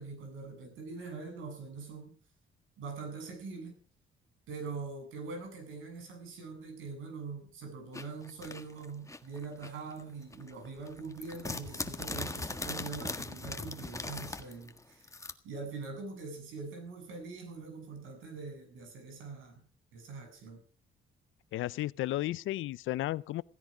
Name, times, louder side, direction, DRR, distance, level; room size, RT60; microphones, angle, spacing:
voice 1, 0.0-2.2 2.8-3.8 4.5-15.2 15.4-19.6 19.9-20.6, right 4 dB, 85° right, 7.8 m, -43 dB
sound 1, 7.9-10.0 10.3-15.3, left 3 dB, 15° left, 1.6 m, -40 dB
voice 2, 21.5-23.4, left 15 dB, 80° left, 0.7 m, -33 dB
16.5 x 16.0 x 5.0 m
cardioid pair, 90°, 20 cm